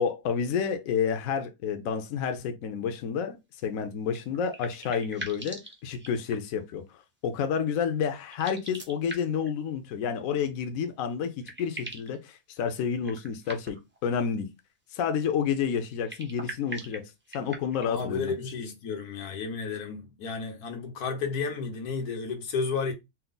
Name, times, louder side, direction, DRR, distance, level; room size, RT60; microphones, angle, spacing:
voice 1, 0.0-3.4 3.6-13.8 14.0-14.5 14.9-17.0 17.3-18.3, left 7 dB, 70° left, 1.0 m, -30 dB
sound 1, 4.1-6.6 8.2-9.5 10.9-11.0 11.2-12.2 13.0-14.0 15.9-18.1, right 1 dB, 15° right, 0.5 m, -42 dB
voice 2, 17.8-22.9, left 5 dB, 90° left, 1.5 m, -32 dB
4.4 x 2.0 x 3.8 m
omnidirectional pair, 1.6 m